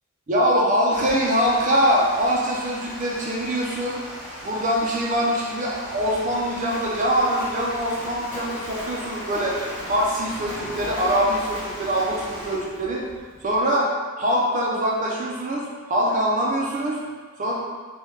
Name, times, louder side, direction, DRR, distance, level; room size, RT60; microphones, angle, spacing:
voice 1, 0.3-4.0 4.4-9.6 9.9-13.0 13.4-13.9 14.2-17.0 17.4-17.5, equal, 40° right, -4 dB, 0.5 m, -23 dB
Water, 0.9-12.6, equal, 5° right, 0.7 m, -38 dB
Splash splatter, 5.7-13.6, left 1 dB, 10° left, 1.3 m, -40 dB
3.4 x 2.3 x 3.1 m, 1.5 s
head